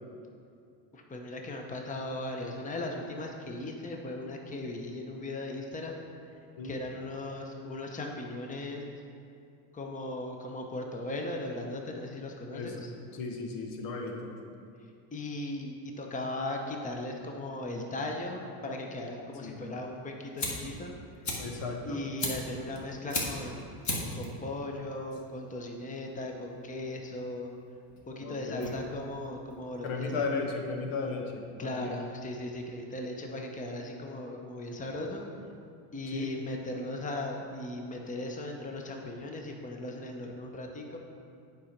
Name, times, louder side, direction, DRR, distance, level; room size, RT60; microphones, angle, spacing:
voice 1, 0.9-6.0 6.6-8.8 9.7-12.9 15.1-20.9 21.8-23.8 24.1-27.5 28.1-30.3 31.6-35.2 35.9-41.0, left 1 dB, 15° left, 2 dB, 0.9 m, -38 dB
voice 2, 13.1-14.3 19.4-19.6 21.4-22.0 28.2-28.8 29.8-31.9 36.1-36.3, left 4 dB, 75° left, 2 dB, 1.4 m, -35 dB
Fire, 19.9-30.4, left 2 dB, 40° left, 1.9 m, -39 dB
8.3 x 5.2 x 5.9 m, 2.4 s
supercardioid pair, 110°, 46 cm